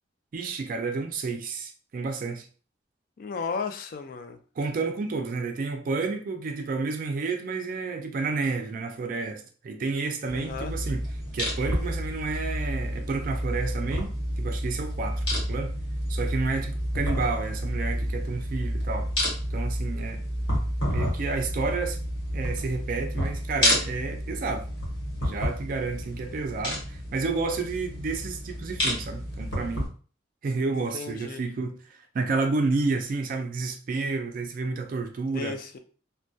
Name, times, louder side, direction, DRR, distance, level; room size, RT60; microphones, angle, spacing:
voice 1, 0.3-2.5 4.6-11.0 11.3-15.7 16.1-19.1 19.5-20.2 20.9-22.0 22.3-24.7 25.2-29.9 30.4-35.6, right 4 dB, 45° right, 0.3 m, -30 dB
voice 2, 3.2-4.4 10.3-10.7 30.7-31.4 35.3-35.8, left 5 dB, 50° left, 0.3 m, -34 dB
sound 1, 10.3-29.9, equal, 70° left, 1.1 m, -30 dB
2.2 x 2.2 x 2.6 m
head